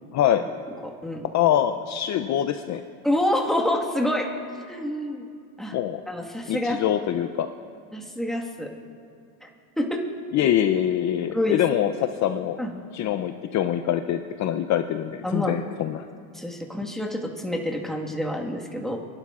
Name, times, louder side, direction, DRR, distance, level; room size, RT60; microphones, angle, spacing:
voice 1, 0.1-0.5 1.3-2.8 5.7-6.0 6.5-7.5 10.3-12.6 12.9-16.1, left 11 dB, 40° left, 8 dB, 0.6 m, -24 dB
voice 2, 0.8-1.3 3.0-4.3 4.7-5.3 5.6-5.7 6.1-6.8 7.9-8.7 9.4-9.5 9.8-10.0 11.3-11.6 12.6-12.7 15.2-15.6 16.3-19.0, left 1 dB, ahead, 0 dB, 1.6 m, -27 dB
29.0 x 12.0 x 2.5 m, 2.4 s
supercardioid pair, 100°, 43 cm